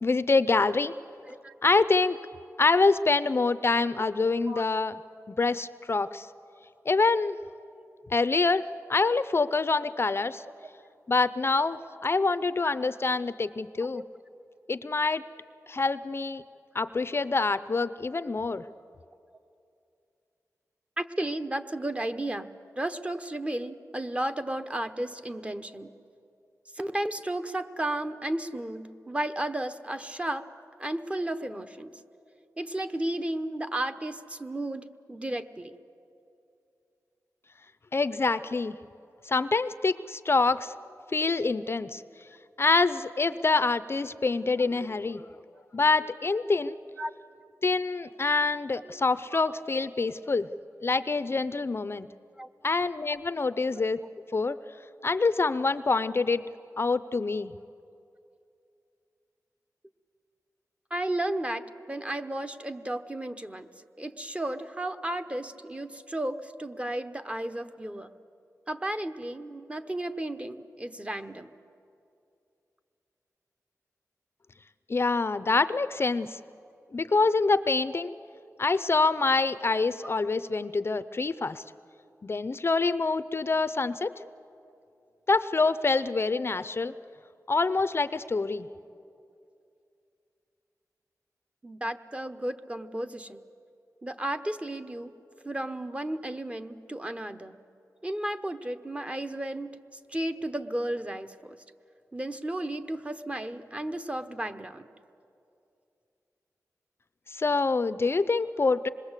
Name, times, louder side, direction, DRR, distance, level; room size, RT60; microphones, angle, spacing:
voice 1, 0.0-0.9 1.6-2.2 2.6-5.0 5.3-6.3 6.9-7.4 8.1-10.4 11.1-14.0 14.7-15.2 15.7-16.4 16.7-18.6 37.9-38.8 39.2-40.7 41.1-42.0 42.6-45.3 45.7-46.8 47.6-50.5 50.8-52.1 52.6-54.0 54.3-54.6 55.0-56.4 56.8-57.5 74.9-76.4 76.9-78.1 78.6-81.6 82.2-84.1 85.3-86.9 87.5-88.7 107.3-108.9, left 3 dB, 40° left, 14 dB, 0.5 m, -26 dB
voice 2, 21.0-22.5 22.8-25.9 26.7-30.5 30.8-31.9 32.6-35.7 47.0-47.1 48.9-49.0 49.3-49.6 52.4-52.5 53.7-53.8 60.9-63.7 64.0-68.1 68.7-71.5 91.6-93.4 94.0-95.1 95.4-97.6 98.0-99.8 100.1-101.5 102.1-104.9, right 1 dB, 20° right, 8 dB, 1.0 m, -33 dB
26.5 x 21.0 x 8.1 m, 2.6 s
wide cardioid pair, 90°, 6 cm